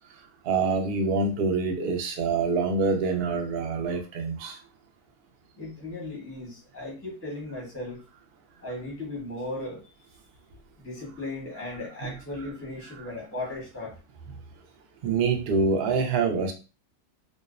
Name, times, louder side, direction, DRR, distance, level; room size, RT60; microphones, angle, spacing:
voice 1, 0.5-4.6 12.0-12.1 12.8-13.0 15.0-16.5, right 4 dB, 85° right, 4 dB, 0.5 m, -26 dB
voice 2, 5.6-8.0 8.6-9.8 10.8-13.9, left 2 dB, 15° left, -3 dB, 0.5 m, -36 dB
2.6 x 2.0 x 2.3 m, 0.32 s
omnidirectional pair, 1.6 m